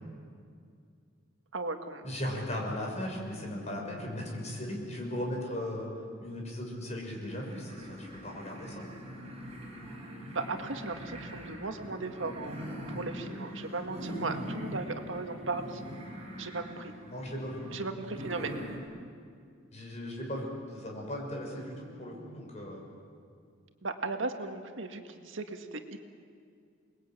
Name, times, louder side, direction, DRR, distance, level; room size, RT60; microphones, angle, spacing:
voice 1, 1.5-2.1 10.3-12.6 12.9-15.8 16.4-16.9 17.7-18.6 23.8-26.0, right 3 dB, 75° right, 5 dB, 1.9 m, -36 dB
voice 2, 2.0-5.9 6.2-8.9 17.1-17.7 18.3-18.6 19.7-22.9, left 1 dB, 35° left, 0 dB, 6.4 m, -37 dB
sound 1, 7.3-18.8, equal, 30° right, 6.5 m, -42 dB
29.5 x 20.5 x 9.1 m, 2.3 s
head